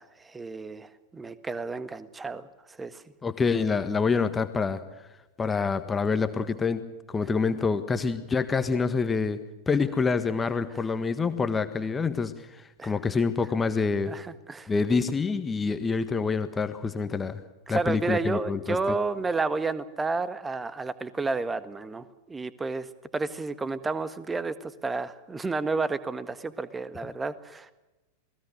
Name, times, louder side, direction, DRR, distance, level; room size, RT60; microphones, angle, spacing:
voice 1, 0.0-3.0 12.8-12.9 14.1-14.7 17.7-22.9 23.1-27.7, right 3 dB, 10° right, 14 dB, 1.6 m, -31 dB
voice 2, 3.2-4.8 5.4-9.4 9.7-14.2 14.7-17.4 17.7-18.8, left 4 dB, 15° left, 10 dB, 1.6 m, -27 dB
28.0 x 20.0 x 6.6 m, 1.0 s
figure-of-eight pair, 90°, 0 cm